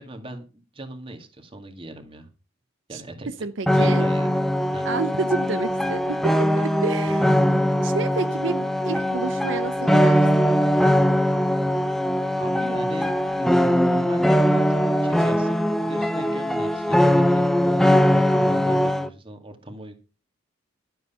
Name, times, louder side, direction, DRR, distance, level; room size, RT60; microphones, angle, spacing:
voice 1, 0.0-2.3 2.9-3.3 3.6-4.4 4.7-4.9 12.4-19.9, right 1 dB, 25° right, 6 dB, 2.1 m, -39 dB
voice 2, 3.4-4.1 4.8-7.3 7.8-10.5, right 3 dB, 65° right, 11 dB, 0.7 m, -30 dB
sound 1, 3.7-19.1, equal, ahead, 0.7 m, -21 dB
12.5 x 8.0 x 5.6 m, 0.32 s
head